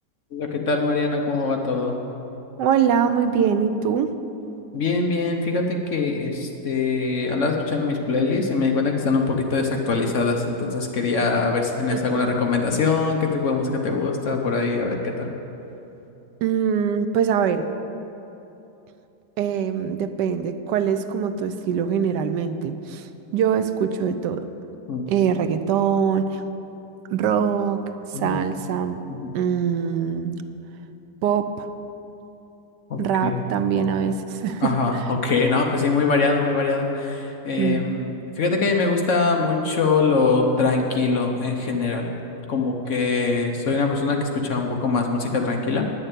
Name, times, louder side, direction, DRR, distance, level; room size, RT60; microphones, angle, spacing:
voice 1, 0.3-2.0 4.7-15.3 24.9-25.0 28.1-28.5 29.1-29.3 32.9-33.4 33.7-33.9 34.6-38.1 38.4-42.1 42.5-45.9, left 4 dB, 55° left, 2 dB, 1.0 m, -23 dB
voice 2, 2.6-4.1 11.9-12.0 16.4-17.6 19.4-23.0 23.3-24.5 25.1-26.4 27.1-27.8 28.2-29.0 29.3-30.3 31.2-31.7 33.0-35.0 37.6-37.8, right 7 dB, 80° right, 10 dB, 1.2 m, -23 dB
9.8 x 6.7 x 9.0 m, 2.9 s
omnidirectional pair, 1.9 m